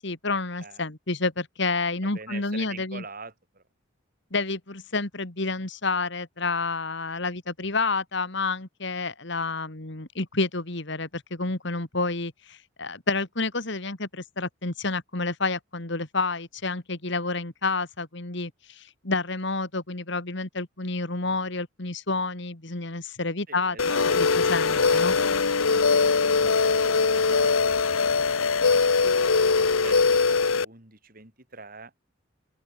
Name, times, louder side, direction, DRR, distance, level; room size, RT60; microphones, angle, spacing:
voice 1, 0.0-3.0 4.3-23.8 24.1-25.2, left 3 dB, 60° left, 2.4 m, -29 dB
voice 2, 2.0-3.6 23.5-29.2 29.8-31.9, right 4 dB, 45° right, 5.4 m, -46 dB
sound 1, 23.8-30.6, left 4 dB, 85° left, 1.0 m, -21 dB
open air
head